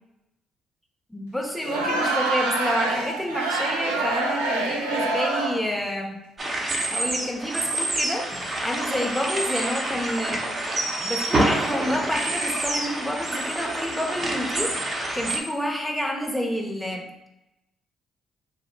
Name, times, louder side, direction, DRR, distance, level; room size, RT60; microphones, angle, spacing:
voice 1, 1.1-6.2 6.9-8.3 8.6-10.4 11.0-17.1, equal, 5° left, 1 dB, 0.7 m, -29 dB
Crowd, 1.6-5.8, right 2 dB, 90° right, 0.4 m, -26 dB
sound 1, 6.4-15.4, right 1 dB, 40° right, 0.7 m, -27 dB
2.8 x 2.0 x 3.8 m, 0.92 s
hypercardioid pair, 50°, 0 cm